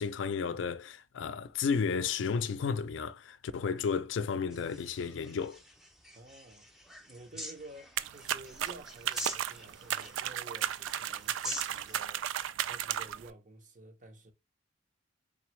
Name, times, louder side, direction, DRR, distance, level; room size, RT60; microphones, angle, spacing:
voice 1, 0.0-5.6, left 5 dB, 80° left, 0.4 m, -33 dB
sound 1, 4.5-12.0, left 1 dB, ahead, 0.5 m, -45 dB
voice 2, 6.1-14.3, right 2 dB, 40° right, 0.7 m, -52 dB
sound 2, 8.0-13.3, right 10 dB, 85° right, 0.3 m, -35 dB
3.8 x 3.4 x 3.1 m
head